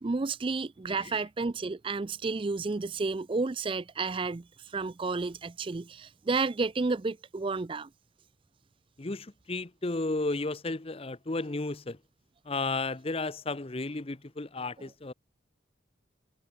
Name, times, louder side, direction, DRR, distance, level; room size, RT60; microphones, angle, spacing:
voice 1, 0.0-7.9 14.8-14.9, right 3 dB, 25° right, 0.4 m, -31 dB
voice 2, 9.0-12.0 12.5-15.1, left 2 dB, 30° left, 0.8 m, -33 dB
head